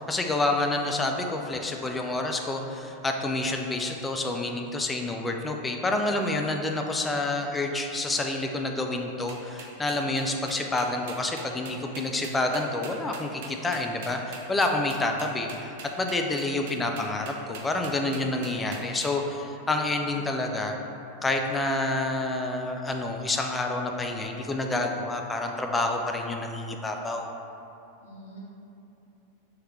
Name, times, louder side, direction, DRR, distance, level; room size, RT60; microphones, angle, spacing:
voice 1, 0.0-20.8 21.2-27.3, left 2 dB, 10° left, 3 dB, 0.3 m, -28 dB
sound 1, 9.3-19.1, right 5 dB, 55° right, 0.4 m, -43 dB
voice 2, 28.0-28.4, right 1 dB, 65° left, -4 dB, 0.7 m, -49 dB
3.1 x 3.0 x 3.5 m, 2.9 s
figure-of-eight pair, 90°, 0 cm